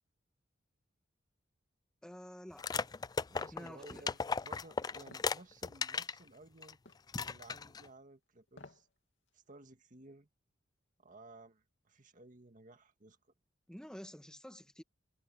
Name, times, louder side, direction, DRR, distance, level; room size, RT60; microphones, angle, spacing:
voice 1, 2.0-2.8 3.5-4.1 13.7-14.8, equal, 5° left, 1.7 m, -50 dB
sound 1, 2.6-6.2 6.6-6.7 7.1-7.9, left 5 dB, 20° left, 0.3 m, -37 dB
voice 2, 3.3-6.8 7.2-8.9 9.3-10.3 11.0-13.2, right 2 dB, 45° right, 1.8 m, -56 dB
sound 2, 5.1-5.3 6.9-7.1 8.5-8.9 9.3-9.4, left 2 dB, 65° left, 2.8 m, -55 dB
head